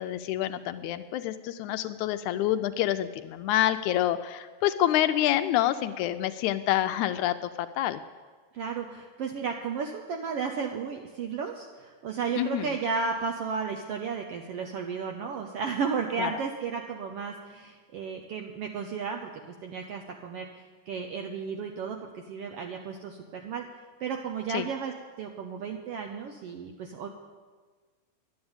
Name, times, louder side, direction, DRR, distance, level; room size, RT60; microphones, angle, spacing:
voice 1, 0.0-8.0 12.4-12.7 16.2-16.3 24.5-24.7, left 12 dB, 80° left, 10 dB, 1.8 m, -27 dB
voice 2, 8.5-19.3 19.6-22.0 22.3-23.6 24.0-24.9 25.2-27.1, right 5 dB, 75° right, 3 dB, 1.4 m, -33 dB
11.5 x 9.5 x 8.8 m, 1.4 s
omnidirectional pair, 3.6 m